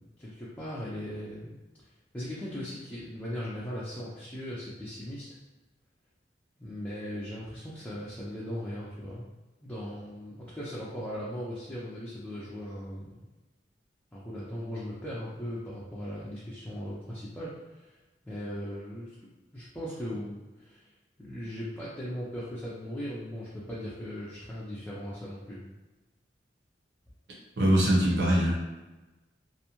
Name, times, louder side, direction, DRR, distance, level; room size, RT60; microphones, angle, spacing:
voice 1, 0.0-1.5 2.1-5.4 6.6-9.3 9.6-13.2 14.1-17.9 18.2-19.2 19.5-20.8 21.2-25.6, equal, 10° left, -9 dB, 0.4 m, -38 dB
voice 2, 27.6-28.5, equal, 75° right, -4 dB, 0.8 m, -22 dB
2.5 x 2.1 x 2.9 m, 1.1 s
head